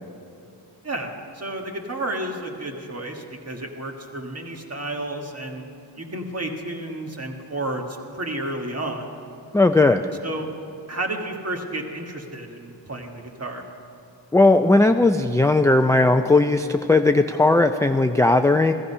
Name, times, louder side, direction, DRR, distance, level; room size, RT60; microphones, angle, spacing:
voice 1, 0.8-5.6 6.0-9.1 10.2-10.5 10.9-13.6, right 1 dB, 35° right, 2 dB, 1.6 m, -31 dB
voice 2, 9.5-10.0 14.3-18.7, left 2 dB, 10° left, 6 dB, 0.3 m, -17 dB
15.5 x 14.5 x 5.5 m, 2.8 s
wide cardioid pair, 120°, 43 cm